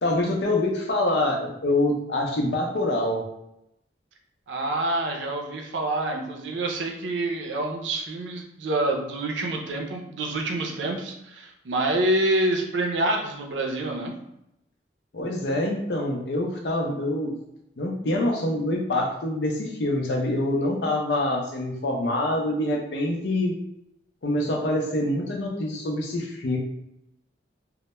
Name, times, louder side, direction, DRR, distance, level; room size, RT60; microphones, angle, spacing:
voice 1, 0.0-3.3 15.1-17.3 17.8-23.5 24.2-26.6, left 1 dB, 70° left, 0 dB, 0.5 m, -25 dB
voice 2, 4.5-14.1, right 1 dB, 85° right, 2 dB, 0.5 m, -27 dB
2.2 x 2.0 x 2.9 m, 0.81 s
head